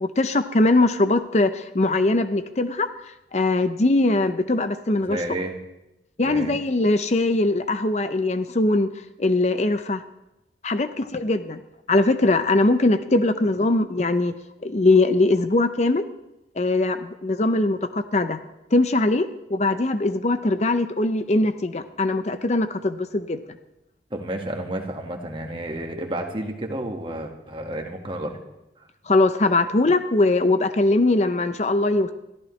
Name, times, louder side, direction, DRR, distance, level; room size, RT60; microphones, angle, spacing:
voice 1, 0.0-2.9 3.3-5.2 6.2-8.9 9.2-10.0 10.6-11.6 11.9-14.3 14.6-16.0 16.6-18.4 18.7-23.4 29.1-32.1, left 2 dB, 40° left, 10 dB, 0.6 m, -21 dB
voice 2, 5.0-5.6 6.2-6.6 24.1-28.4, right 1 dB, 30° right, 3 dB, 1.7 m, -31 dB
22.0 x 14.0 x 3.2 m, 0.92 s
head